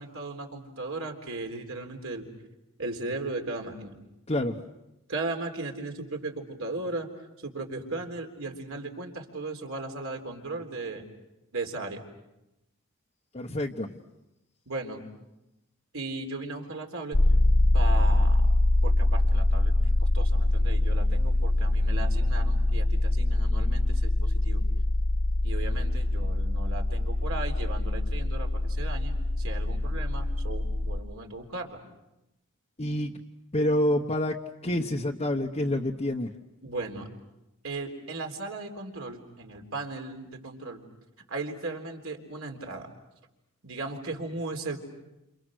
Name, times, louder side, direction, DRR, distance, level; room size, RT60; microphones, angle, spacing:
voice 1, 0.0-2.3 2.8-4.0 5.1-7.1 7.4-11.0 11.5-12.0 14.7-15.0 15.9-17.2 17.7-18.4 18.8-19.7 20.0-24.6 25.4-31.8 36.6-37.1 37.6-40.8 41.3-42.9 43.6-44.8, right 2 dB, 60° right, 3 dB, 3.8 m, -36 dB
voice 2, 4.3-4.6 13.3-14.0 32.8-33.1 33.5-34.4 34.6-36.3, left 1 dB, 30° left, -1 dB, 1.1 m, -27 dB
sound 1, 17.1-31.0, left 1 dB, 55° left, 0.9 m, -24 dB
29.5 x 28.5 x 6.5 m, 0.92 s
head